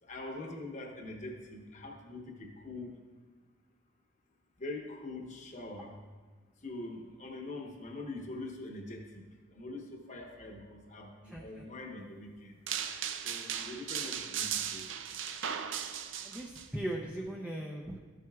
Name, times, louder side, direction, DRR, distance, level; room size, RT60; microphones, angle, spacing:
voice 1, 0.0-3.0 4.6-6.0 6.6-12.6 13.2-14.8, left 2 dB, 40° left, 1 dB, 1.0 m, -43 dB
voice 2, 11.3-11.6 16.2-18.0, right 1 dB, 5° right, -2 dB, 0.6 m, -39 dB
sound 1, 12.7-16.7, right 8 dB, 70° right, 0.5 m, -37 dB
13.0 x 7.6 x 2.4 m, 1.4 s
head